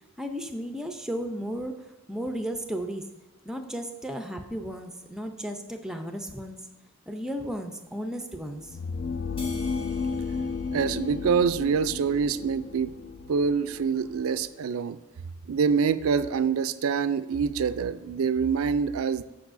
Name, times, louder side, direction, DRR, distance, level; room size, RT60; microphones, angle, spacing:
voice 1, 0.2-1.7 2.1-3.0 3.5-6.6 7.1-8.8, equal, 5° right, 5 dB, 0.5 m, -34 dB
sound 1, 8.6-14.5, left 4 dB, 50° left, 0.3 m, -33 dB
sound 2, 9.4-12.0, left 2 dB, 25° left, 1.3 m, -48 dB
voice 2, 10.7-13.0 13.3-15.0 15.5-19.2, right 6 dB, 75° right, 13 dB, 0.4 m, -25 dB
14.5 x 5.4 x 2.6 m, 1.1 s
head